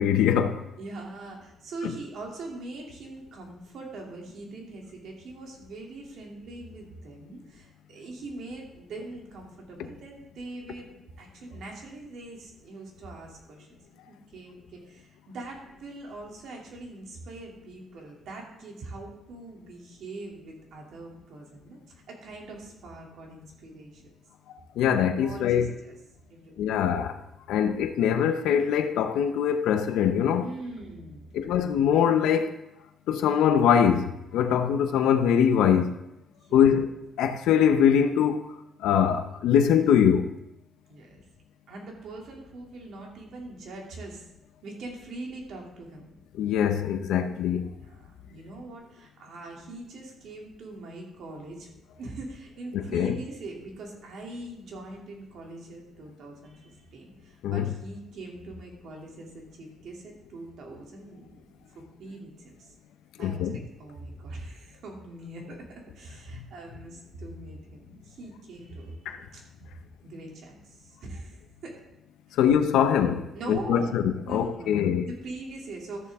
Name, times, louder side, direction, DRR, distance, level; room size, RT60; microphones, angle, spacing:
voice 1, 0.0-0.6 24.8-25.7 26.6-27.2 27.5-30.5 31.3-32.6 33.1-36.0 36.5-38.5 38.8-40.3 46.4-47.7 52.7-53.2 57.4-57.7 63.2-63.6 69.1-69.2 72.4-75.1, left 8 dB, 90° left, 0.8 m, -23 dB
voice 2, 0.8-10.9 11.2-13.8 14.1-24.0 25.1-26.0 26.3-26.7 30.4-31.4 36.4-36.8 40.9-41.2 41.7-44.2 44.6-46.2 47.8-51.7 52.0-62.7 63.2-69.4 70.0-71.7 73.3-74.0 74.2-76.1, right 2 dB, 70° right, 2.8 m, -42 dB
13.5 x 6.9 x 3.6 m
cardioid pair, 90°, 0 cm